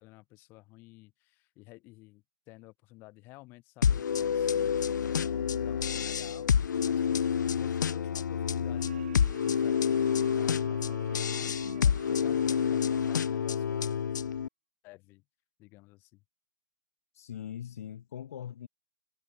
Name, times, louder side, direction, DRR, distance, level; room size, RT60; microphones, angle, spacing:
voice 1, 0.0-8.9 9.4-13.8 14.8-15.2 15.6-16.2, left 22 dB, 20° left, 7.2 m, -53 dB
sound 1, 3.8-14.5, left 7 dB, 90° left, 0.5 m, -28 dB
sound 2, 8.8-13.6, right 14 dB, 40° right, 5.9 m, -49 dB
voice 2, 17.1-18.7, left 10 dB, 55° left, 1.9 m, -41 dB
hypercardioid pair, 165°, 10 cm